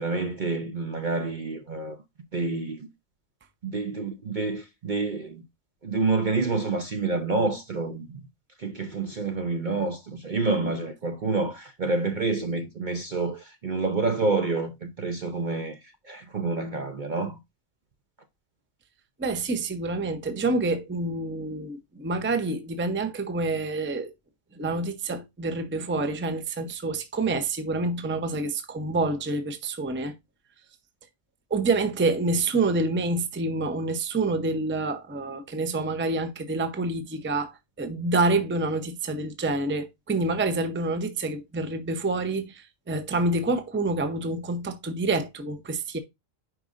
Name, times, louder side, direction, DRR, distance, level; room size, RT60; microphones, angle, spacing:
voice 1, 0.0-2.0 2.3-2.9 3.6-5.4 5.8-8.3 8.6-15.8 16.0-17.4, right 3 dB, 45° right, 0.7 m, -28 dB
voice 2, 19.2-24.1 24.5-30.1 31.5-46.0, right 3 dB, 10° right, 0.5 m, -27 dB
8.8 x 5.2 x 2.5 m
omnidirectional pair, 1.4 m